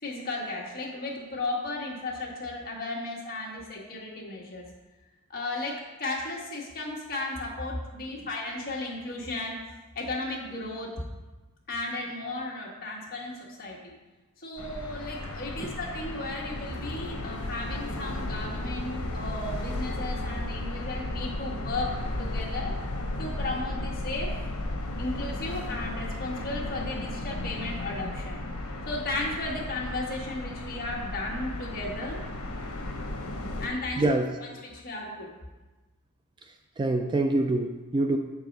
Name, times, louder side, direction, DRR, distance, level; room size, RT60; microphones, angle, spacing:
voice 1, 0.0-4.6 5.3-9.6 9.9-11.0 11.7-13.9 14.4-22.8 23.2-24.4 25.0-28.4 28.9-32.3 33.6-34.0 34.4-35.3, left 2 dB, 40° left, -2 dB, 1.5 m, -35 dB
sound 1, 14.6-33.7, left 1 dB, 80° left, 1.0 m, -34 dB
voice 2, 34.0-34.3 36.8-38.2, right 2 dB, 20° right, 5 dB, 0.3 m, -25 dB
6.8 x 4.7 x 5.3 m, 1.2 s
head